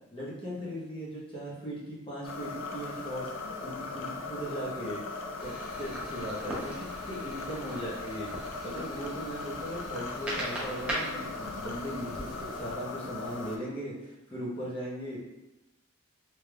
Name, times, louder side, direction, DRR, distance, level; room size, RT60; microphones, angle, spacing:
voice 1, 0.1-3.3 3.6-5.5 5.8-15.2, equal, 25° left, -6 dB, 0.8 m, -38 dB
sound 1, 2.2-13.6, left 3 dB, 70° left, 0.4 m, -39 dB
sound 2, 5.4-12.7, right 1 dB, 5° right, 0.6 m, -40 dB
3.3 x 3.1 x 2.3 m, 0.94 s
head